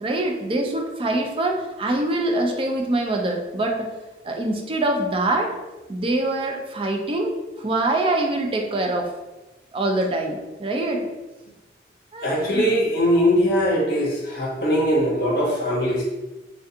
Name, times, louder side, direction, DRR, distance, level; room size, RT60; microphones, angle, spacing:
voice 1, 0.0-3.9 4.2-5.5 5.9-9.1 9.7-11.1 12.1-12.8, right 2 dB, 30° right, 2 dB, 0.4 m, -24 dB
voice 2, 12.2-16.0, equal, 60° left, -3 dB, 0.6 m, -21 dB
3.3 x 2.4 x 2.7 m, 1.1 s
head